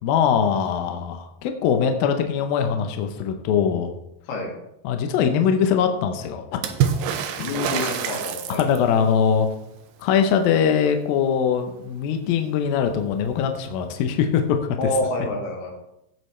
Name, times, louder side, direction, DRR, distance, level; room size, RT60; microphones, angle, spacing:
voice 1, 0.0-3.9 4.8-6.6 8.5-9.5 10.0-14.6, left 7 dB, 80° left, 6 dB, 2.1 m, -22 dB
Water / Splash splatter, 6.6-9.0 12.3-12.4 12.7-13.4 14.5-14.6, right 8 dB, 90° right, 2.0 m, -26 dB
voice 2, 7.4-8.7 14.8-15.7, left 2 dB, 60° left, 0 dB, 4.0 m, -27 dB
15.5 x 8.0 x 3.3 m, 0.83 s
omnidirectional pair, 5.3 m